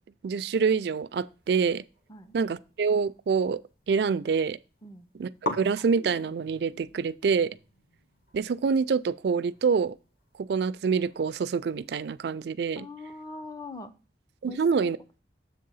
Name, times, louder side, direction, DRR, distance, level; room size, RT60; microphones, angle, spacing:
voice 1, 0.2-1.8 2.3-3.6 3.9-4.6 5.2-7.5 8.3-10.0 10.4-12.9 14.4-15.0, right 5 dB, 65° right, 0.3 m, -26 dB
sound 1, 1.9-3.7 3.9-4.6 4.9-5.0 5.4-12.2, left 1 dB, 50° left, 1.4 m, -42 dB
voice 2, 12.8-13.9 14.5-14.9, left 3 dB, 20° left, 0.6 m, -42 dB
7.4 x 3.7 x 5.5 m
head